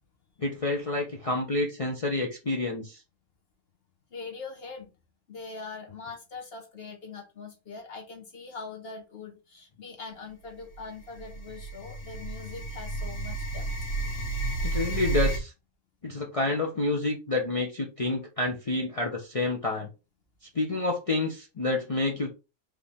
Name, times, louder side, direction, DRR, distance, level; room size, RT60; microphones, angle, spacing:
voice 1, 0.4-3.0 14.6-15.5 16.0-19.9 20.5-22.3, left 2 dB, 35° left, 0 dB, 0.6 m, -28 dB
voice 2, 4.1-4.9 5.3-13.7, left 4 dB, 55° left, 2 dB, 1.2 m, -42 dB
sound 1, 10.7-10.8 11.1-15.4, right 3 dB, 85° left, 1.7 m, -31 dB
4.8 x 2.8 x 3.3 m, 0.29 s
omnidirectional pair, 1.3 m